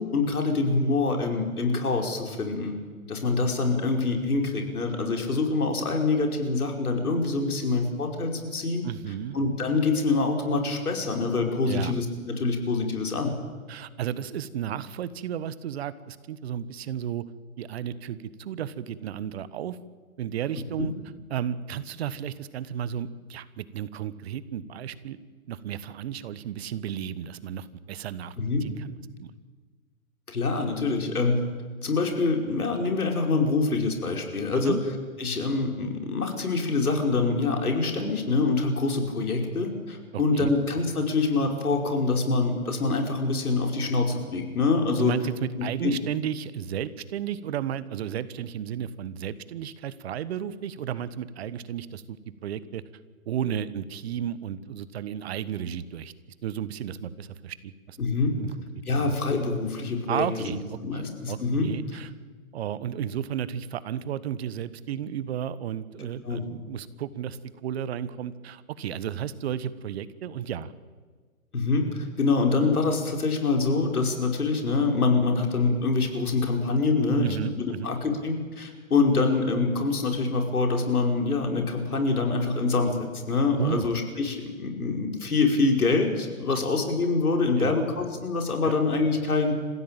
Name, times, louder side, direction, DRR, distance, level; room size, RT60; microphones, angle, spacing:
voice 1, 0.0-2.8 3.1-8.9 9.3-13.3 20.8-20.9 28.4-28.6 30.3-31.4 31.8-34.8 35.2-45.2 45.6-46.0 58.0-58.4 58.9-60.6 60.8-61.7 66.2-66.4 71.5-89.6, left 3 dB, 80° left, 3 dB, 5.4 m, -25 dB
voice 2, 8.8-9.4 11.6-11.9 13.7-17.2 17.6-19.8 20.2-20.9 21.3-25.2 25.5-28.3 28.6-29.3 34.5-34.8 40.1-40.5 45.0-52.2 52.4-52.8 53.3-56.1 56.4-58.0 58.4-58.5 59.0-59.1 60.1-62.1 62.5-70.7 77.2-77.9 83.6-83.9 87.6-87.7 88.6-88.7, right 9 dB, 45° right, 16 dB, 1.3 m, -33 dB
27.5 x 15.5 x 9.0 m, 1.5 s
hypercardioid pair, 135°, 44 cm